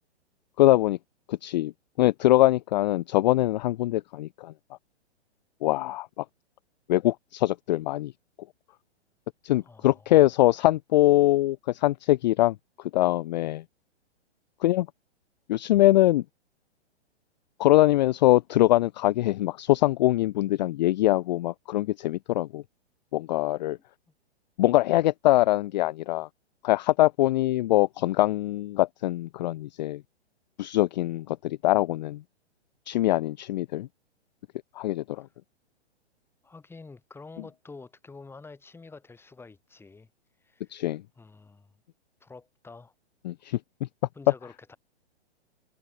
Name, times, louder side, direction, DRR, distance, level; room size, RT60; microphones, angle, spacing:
voice 1, 0.6-1.0 1.3-1.7 2.0-4.5 5.6-6.2 6.9-8.1 9.4-12.6 12.9-13.6 14.6-14.9 15.5-16.2 17.6-22.6 23.1-23.8 24.6-26.3 26.6-30.0 30.6-32.2 32.9-33.9 34.8-35.3 40.7-41.0 43.2-43.9, left 16 dB, 40° left, 0.4 m, -23 dB
voice 2, 9.6-10.3 35.2-35.3 36.4-40.1 40.4-40.8 41.2-41.7 42.2-42.9 44.1-44.8, left 4 dB, 5° left, 2.2 m, -48 dB
hypercardioid pair, 130°, 34 cm